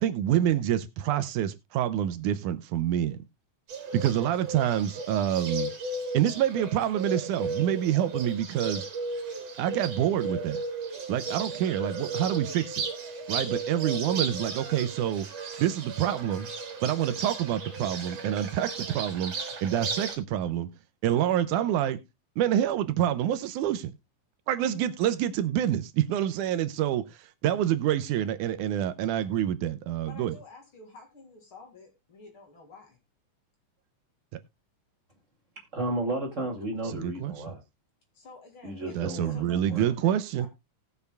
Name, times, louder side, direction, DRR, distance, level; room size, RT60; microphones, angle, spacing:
voice 1, 0.0-3.2 3.9-5.7 6.1-8.9 9.6-10.6 11.1-12.8 13.3-15.3 15.6-16.5 16.8-19.3 19.6-20.7 21.0-22.0 22.4-23.9 24.5-30.3 36.9-37.4 39.0-40.5, right 11 dB, 85° right, 12 dB, 2.2 m, -27 dB
Bird, 3.7-20.2, right 3 dB, 55° right, 2.9 m, -35 dB
voice 2, 30.1-33.0 38.1-39.0 39.3-40.5, left 3 dB, 45° left, 3 dB, 2.7 m, -50 dB
voice 3, 35.7-37.6 38.6-39.4 39.7-39.8, right 1 dB, 25° right, 2 dB, 2.1 m, -32 dB
19.5 x 6.8 x 2.2 m, 0.22 s
omnidirectional pair, 3.5 m